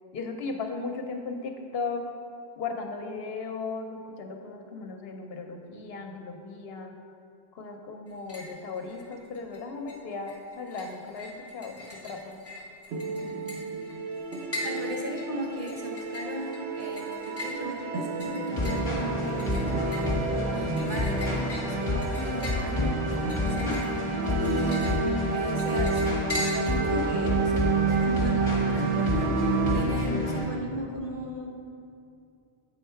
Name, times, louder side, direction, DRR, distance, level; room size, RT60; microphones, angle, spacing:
voice 1, 0.1-2.1 2.6-6.9 7.5-12.4, left 4 dB, 70° left, 4 dB, 0.9 m, -36 dB
sound 1, 8.1-8.6 8.9-9.6 9.9-26.9, left 1 dB, 15° left, 1.2 m, -40 dB
sound 2, 12.9-29.8, right 5 dB, 85° right, 0.9 m, -31 dB
voice 2, 14.6-23.8 24.0-24.9 25.3-31.5, right 1 dB, 55° right, -2 dB, 1.1 m, -37 dB
sound 3, 18.5-30.5, left 1 dB, 30° left, 1.2 m, -29 dB
7.7 x 4.5 x 4.4 m, 2.5 s
omnidirectional pair, 1.1 m